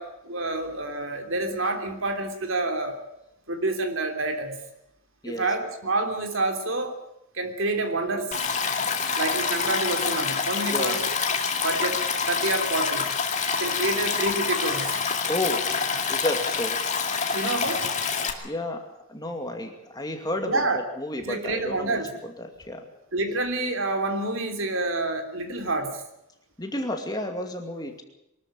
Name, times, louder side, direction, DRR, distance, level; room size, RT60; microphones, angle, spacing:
voice 1, 0.0-3.0 3.5-4.6 5.2-7.0 7.3-8.4 9.2-11.0 11.6-13.1 13.6-15.0 17.3-17.8 20.5-20.8 21.2-22.1 23.1-26.0, right 2 dB, 65° right, 5 dB, 3.2 m, -28 dB
Stream, 8.3-18.3, left 5 dB, 35° left, 2.2 m, -27 dB
voice 2, 15.3-15.8 16.0-17.1 18.4-22.9 26.6-28.0, left 1 dB, 20° left, 4 dB, 2.4 m, -32 dB
23.5 x 13.0 x 9.0 m, 0.85 s
head